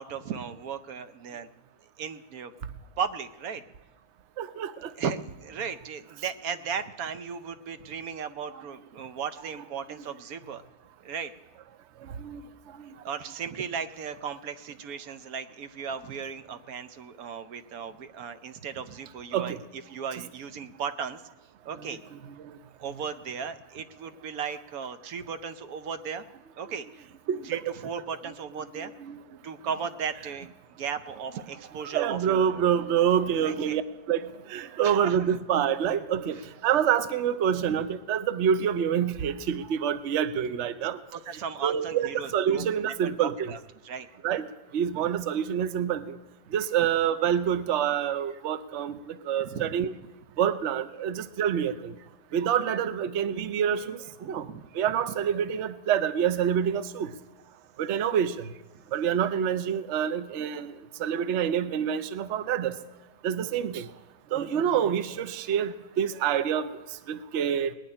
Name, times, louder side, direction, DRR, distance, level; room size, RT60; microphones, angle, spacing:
voice 1, 0.0-1.5 2.0-2.5 3.0-3.6 5.0-10.6 11.0-11.3 13.0-21.2 21.6-22.0 22.8-26.2 26.6-27.0 27.4-28.9 29.4-30.5 30.8-32.6 33.4-33.8 34.8-35.3 36.3-36.4 37.7-37.8 41.1-44.1 49.4-49.7 54.3-54.7, right 6 dB, 75° right, 10 dB, 1.2 m, -36 dB
voice 2, 4.4-4.9 12.2-12.4 12.8-12.9 19.3-19.6 22.4-22.5 27.3-27.6 28.7-29.2 31.8-33.8 34.1-41.0 41.6-43.5 44.2-44.5 44.7-46.2 46.5-49.9 50.4-51.9 52.3-54.5 54.7-57.1 57.8-58.5 58.9-60.7 61.0-62.7 63.2-63.9 64.3-66.7 67.1-67.7, right 8 dB, 60° right, 11 dB, 0.9 m, -27 dB
19.5 x 6.5 x 9.8 m, 0.99 s
omnidirectional pair, 1.5 m